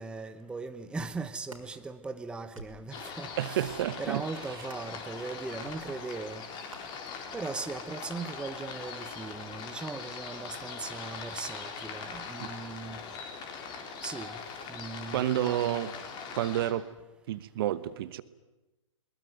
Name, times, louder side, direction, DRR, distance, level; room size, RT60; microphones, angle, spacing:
voice 1, 0.0-6.4 7.3-13.0 14.0-14.4 14.7-15.8, right 4 dB, 5° right, 10 dB, 0.8 m, -39 dB
sound 1, 1.4-1.7 2.3-2.8 3.6-3.9 4.6-5.0 5.6-5.8 6.7-6.8, right 1 dB, 90° right, 4.5 m, -48 dB
sound 2, 2.9-16.7, left 5 dB, 25° left, 3.7 m, -41 dB
voice 2, 3.4-4.2 12.4-12.5 15.1-15.9 16.4-16.8 17.3-18.2, right 13 dB, 45° right, 17 dB, 1.1 m, -29 dB
22.5 x 20.5 x 9.3 m, 1.1 s
figure-of-eight pair, 120°, 17 cm